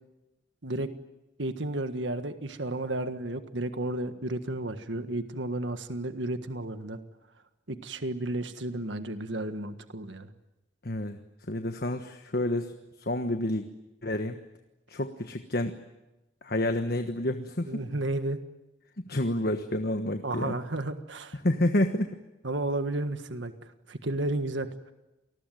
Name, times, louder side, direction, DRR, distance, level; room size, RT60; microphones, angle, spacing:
voice 1, 1.4-7.0 7.7-10.3 17.7-18.4 20.2-21.4 22.4-23.5 23.9-24.7, right 2 dB, 75° right, 9 dB, 1.6 m, -32 dB
voice 2, 10.8-11.2 11.5-13.6 14.0-14.3 14.9-15.8 16.4-17.7 19.1-20.5 21.4-22.2, left 1 dB, 55° left, 7 dB, 1.3 m, -29 dB
28.5 x 20.0 x 9.2 m, 1.0 s
head